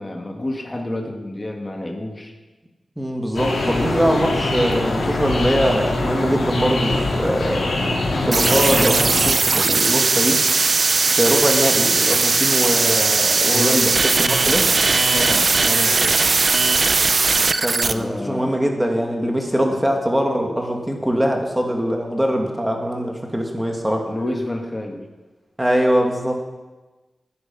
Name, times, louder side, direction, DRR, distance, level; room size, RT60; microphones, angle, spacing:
voice 1, 0.0-2.3 13.5-14.0 14.4-14.6 15.1-16.3 17.9-18.6 24.1-25.0, left 1 dB, 20° left, 2 dB, 2.1 m, -28 dB
voice 2, 3.0-7.7 8.2-10.4 11.0-13.9 14.2-14.7 17.6-24.1 25.6-26.5, equal, 10° right, 2 dB, 2.3 m, -22 dB
sound 1, 3.3-9.3, left 2 dB, 80° left, 3.2 m, -23 dB
sound 2, 8.3-17.9, right 4 dB, 50° right, 0.7 m, -18 dB
16.5 x 9.7 x 5.6 m, 1.2 s
wide cardioid pair, 105°, 0 cm